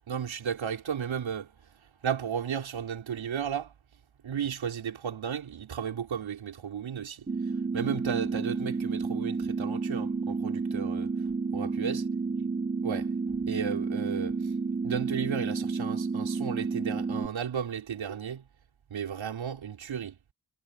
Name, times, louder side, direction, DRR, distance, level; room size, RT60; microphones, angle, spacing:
voice 1, 0.1-1.5 2.0-3.7 4.2-7.3 7.7-11.1 11.5-12.1 12.8-14.5 14.8-18.4 18.9-20.2, right 8 dB, 90° right, 4.4 m, -34 dB
sound 1, 7.3-17.3, right 4 dB, 20° right, 2.0 m, -31 dB
wide cardioid pair, 155°, 45 cm